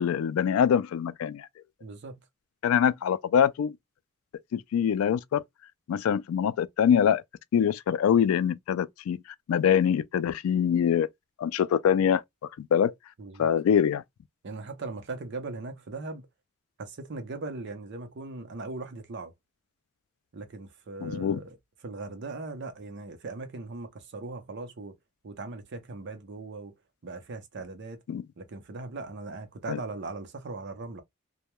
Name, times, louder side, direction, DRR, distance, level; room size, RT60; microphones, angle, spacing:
voice 1, 0.0-1.5 2.6-3.7 4.5-5.4 5.9-7.2 7.5-9.2 9.5-11.1 11.4-12.2 12.6-12.9 13.4-14.0 21.0-21.4 28.1-28.2 29.7-29.8, left 8 dB, 80° left, 0.3 m, -24 dB
voice 2, 1.8-2.2 13.2-13.5 14.4-16.3 16.8-19.3 20.3-21.6 21.8-24.9 25.2-26.7 27.0-28.0 28.4-31.0, right 3 dB, 55° right, 0.6 m, -39 dB
2.2 x 2.1 x 2.9 m
head